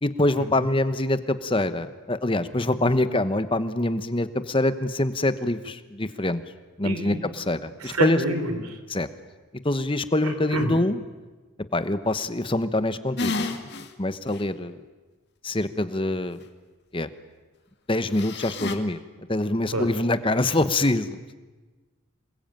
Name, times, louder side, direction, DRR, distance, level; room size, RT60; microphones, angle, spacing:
voice 1, 0.0-6.4 6.8-8.2 8.9-9.1 9.6-11.0 11.7-13.7 14.0-14.8 15.4-16.4 16.9-17.1 17.9-19.0 19.3-21.3, left 1 dB, 25° left, 12 dB, 1.1 m, -25 dB
voice 2, 6.8-7.2 7.8-8.8 10.2-10.7 19.7-19.9, right 1 dB, 90° right, 8 dB, 3.8 m, -28 dB
sound 1, 13.2-13.9 14.3-14.4 18.1-18.8, left 3 dB, 50° left, 2.0 m, -30 dB
27.0 x 21.5 x 9.0 m, 1.2 s
head